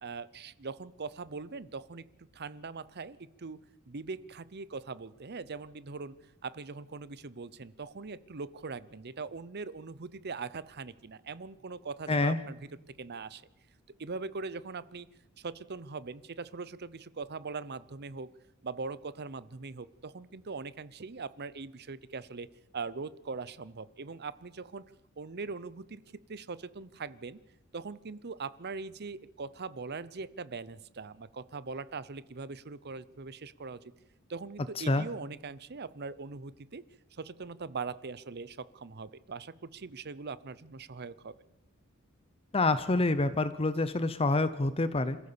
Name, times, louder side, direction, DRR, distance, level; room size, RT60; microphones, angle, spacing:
voice 1, 0.0-2.0 2.3-3.6 3.9-6.2 6.4-12.6 13.0-13.4 14.0-15.1 15.4-18.3 18.6-22.5 22.7-24.8 25.2-26.0 26.3-27.4 27.7-33.8 34.3-36.8 37.2-41.3, right 4 dB, 50° right, 17 dB, 0.8 m, -41 dB
voice 2, 12.1-12.4 34.8-35.1 42.5-45.2, left 2 dB, 25° left, 13 dB, 0.7 m, -27 dB
27.0 x 14.5 x 7.0 m, 0.94 s
head